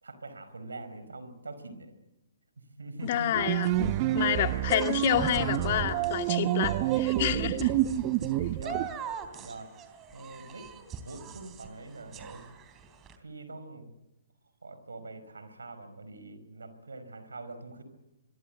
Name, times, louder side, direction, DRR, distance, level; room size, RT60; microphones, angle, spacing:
voice 1, 0.0-1.9 2.6-3.4 7.3-8.9 9.4-9.7 10.1-10.7 11.0-12.5 13.2-13.9 14.6-17.8, right 3 dB, 80° right, 11 dB, 4.9 m, -44 dB
voice 2, 3.0-7.7, left 11 dB, 45° left, 7 dB, 2.0 m, -29 dB
sound 1, 3.0-13.2, right 7 dB, 20° right, 3.3 m, -42 dB
sound 2, 3.3-9.0, right 15 dB, 35° right, 0.9 m, -28 dB
26.0 x 23.0 x 8.0 m, 0.94 s
figure-of-eight pair, 125°, 0 cm